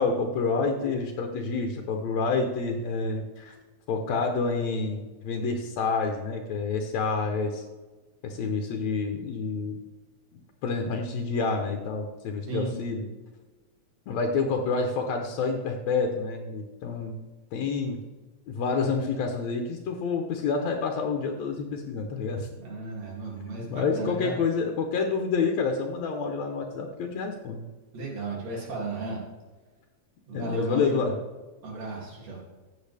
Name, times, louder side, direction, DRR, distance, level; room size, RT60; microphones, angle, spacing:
voice 1, 0.0-3.5 3.9-7.6 8.2-9.8 10.3-13.1 14.1-17.2 17.5-18.0 18.5-22.5 23.7-27.6 30.3-31.1, left 4 dB, 70° left, 3 dB, 2.2 m, -28 dB
voice 2, 22.6-24.3 27.9-29.2 30.3-31.0 31.6-32.4, right 2 dB, 65° right, -3 dB, 3.9 m, -34 dB
15.0 x 7.8 x 3.4 m, 1.3 s
omnidirectional pair, 3.3 m